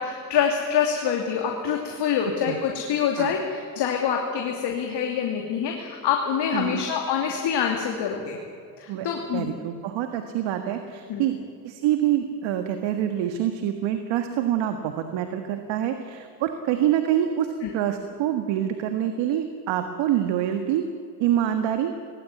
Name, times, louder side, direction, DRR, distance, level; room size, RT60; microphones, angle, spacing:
voice 1, 0.0-8.4 8.8-9.5 11.1-11.3 17.6-17.7, left 7 dB, 55° left, 1 dB, 2.9 m, -26 dB
voice 2, 8.9-11.4 11.6-20.8 21.2-21.9, right 11 dB, 65° right, 7 dB, 1.7 m, -26 dB
19.0 x 17.0 x 9.6 m, 2.4 s
supercardioid pair, 85°, 48 cm